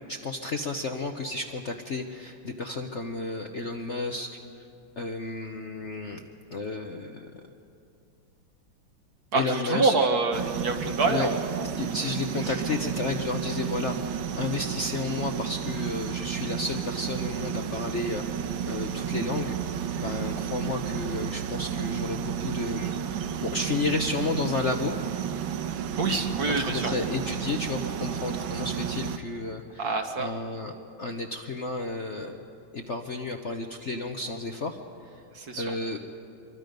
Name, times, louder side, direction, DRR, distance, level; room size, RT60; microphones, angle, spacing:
voice 1, 0.1-4.3 5.0-6.2 6.5-7.3 9.3-9.9 11.1-11.3 11.8-19.6 20.0-24.9 26.6-30.7 31.0-32.4 32.7-34.8 35.1-35.2 35.6-36.0, left 3 dB, 50° left, 3 dB, 0.9 m, -32 dB
voice 2, 9.3-11.7 12.4-12.5 26.0-26.9 29.8-30.3 35.3-35.7, right 3 dB, 55° right, 4 dB, 1.7 m, -26 dB
sound 1, 10.3-29.2, right 8 dB, 80° right, 1.6 m, -32 dB
25.5 x 23.5 x 5.3 m, 2.5 s
omnidirectional pair, 2.2 m